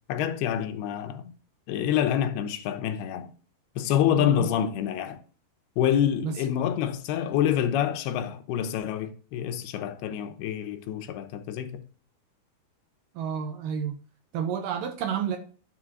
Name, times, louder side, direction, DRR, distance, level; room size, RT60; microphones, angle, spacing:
voice 1, 0.1-1.3 1.7-3.3 3.8-5.2 5.8-11.8, left 10 dB, 80° left, 2.8 m, -27 dB
voice 2, 4.1-4.5 6.2-6.3 13.2-13.9 14.3-15.4, right 7 dB, 75° right, 2.2 m, -30 dB
10.0 x 4.2 x 6.1 m
omnidirectional pair, 4.6 m